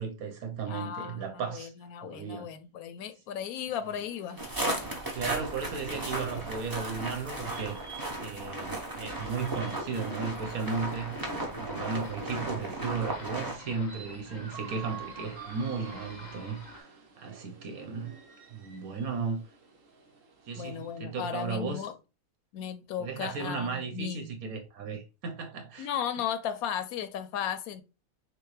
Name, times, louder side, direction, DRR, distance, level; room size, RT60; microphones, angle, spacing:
voice 1, 0.0-1.7 2.0-2.5 5.1-7.8 8.2-11.2 11.5-16.6 17.2-18.1 18.5-19.4 20.5-21.8 23.0-25.9, right 5 dB, 85° right, 1.4 m, -35 dB
voice 2, 0.7-4.4 20.6-21.9 22.5-24.3 25.8-27.8, left 8 dB, 85° left, 1.1 m, -35 dB
sound 1, 3.8-21.0, right 6 dB, 65° right, 1.3 m, -50 dB
sound 2, 4.4-13.6, right 1 dB, 20° right, 0.6 m, -35 dB
sound 3, 9.9-16.8, left 4 dB, 50° left, 0.5 m, -49 dB
6.3 x 2.2 x 3.2 m
omnidirectional pair, 1.5 m